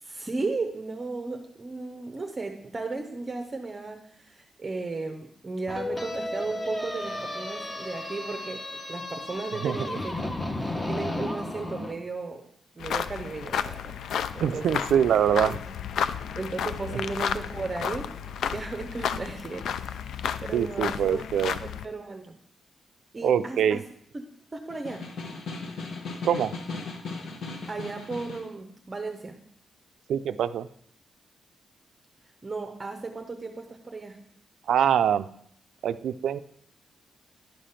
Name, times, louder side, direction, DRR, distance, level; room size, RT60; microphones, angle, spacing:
voice 1, 0.0-8.6 8.9-12.5 12.8-14.0 14.3-14.6 15.5-15.6 16.4-19.7 20.1-21.2 21.6-22.3 23.1-23.8 24.5-25.1 27.7-29.4 32.4-34.2, right 3 dB, 20° right, 4 dB, 0.7 m, -35 dB
sound 1, 5.7-11.9, left 1 dB, 15° left, 0.8 m, -33 dB
sound 2, 12.8-21.9, left 8 dB, 80° left, 0.4 m, -32 dB
voice 2, 14.4-15.6 20.5-21.6 23.2-23.8 26.2-26.5 30.1-30.7 34.7-35.3 35.8-36.4, right 9 dB, 75° right, 13 dB, 0.4 m, -24 dB
Snare drum, 24.7-28.6, left 3 dB, 65° left, 1.2 m, -37 dB
10.5 x 5.1 x 5.7 m, 0.69 s
wide cardioid pair, 165°, 0 cm